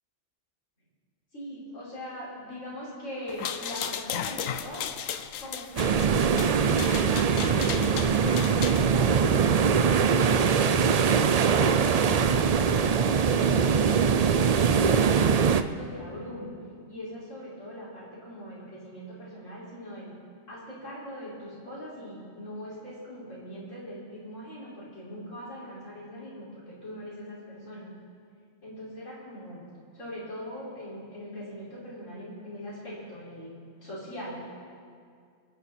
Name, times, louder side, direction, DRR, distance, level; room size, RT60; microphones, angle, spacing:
voice 1, 1.3-4.8 5.4-8.2 8.9-12.6 13.0-16.5 16.9-20.1 20.5-27.9 28.6-29.6 29.9-33.5 33.8-34.4, equal, 70° left, -9 dB, 5.6 m, -41 dB
sound 1, 3.3-8.9, left 9 dB, 90° left, 1.1 m, -35 dB
sound 2, 5.8-15.6, right 6 dB, 60° right, 0.4 m, -22 dB
27.5 x 9.5 x 4.3 m, 2.2 s
omnidirectional pair, 1.3 m